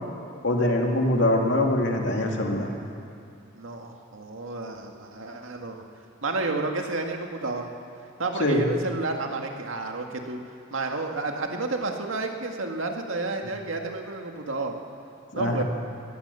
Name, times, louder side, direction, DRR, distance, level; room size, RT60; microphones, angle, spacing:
voice 1, 0.4-2.7 8.4-8.6 15.3-15.6, left 1 dB, 60° left, 1 dB, 2.5 m, -23 dB
voice 2, 3.5-5.8 6.2-7.7 8.2-10.4 10.7-14.8 15.4-15.6, right 3 dB, 80° right, 3 dB, 2.0 m, -31 dB
22.0 x 17.5 x 7.0 m, 2.6 s
head